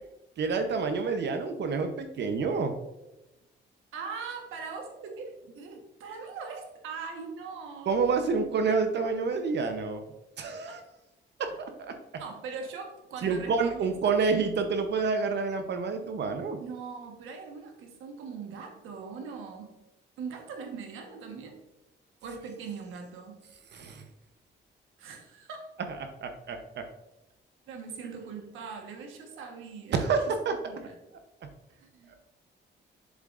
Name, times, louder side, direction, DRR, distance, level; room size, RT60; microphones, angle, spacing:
voice 1, 0.4-2.7 7.9-10.0 10.4-10.8 11.4-11.5 11.8-12.0 13.2-16.6 23.7-24.0 25.9-26.8 29.9-30.6, right 4 dB, 60° right, 6 dB, 0.8 m, -28 dB
voice 2, 3.9-7.9 10.7-10.8 12.2-13.9 16.6-19.7 20.2-21.6 22.2-23.4 25.0-25.7 27.7-30.0 30.7-30.9 31.7-32.2, right 5 dB, 90° right, 3 dB, 1.3 m, -41 dB
7.2 x 7.2 x 2.5 m, 0.96 s
cardioid pair, 90°, 20 cm